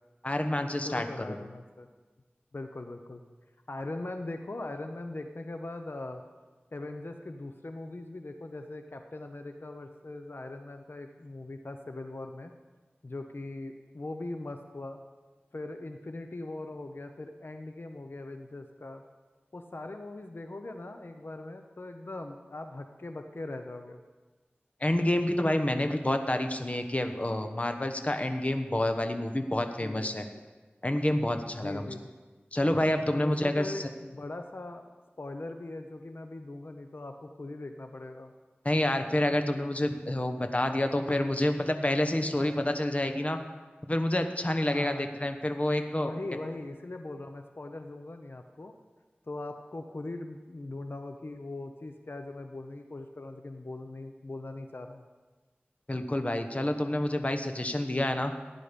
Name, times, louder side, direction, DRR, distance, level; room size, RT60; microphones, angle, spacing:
voice 1, 0.2-1.4 24.8-30.2 30.8-31.9 32.5-33.9 38.6-43.4 43.8-46.1 55.9-58.3, left 1 dB, 35° left, 6 dB, 1.1 m, -28 dB
voice 2, 0.8-1.9 2.5-3.2 3.7-6.2 6.7-12.5 13.0-15.0 15.5-19.0 19.5-24.0 29.8-30.4 31.5-32.1 33.1-34.8 35.2-38.3 44.6-45.0 46.0-48.7 49.3-55.0, left 2 dB, 65° left, 6 dB, 0.8 m, -40 dB
15.5 x 10.0 x 5.2 m, 1.3 s
wide cardioid pair, 50°, 4 cm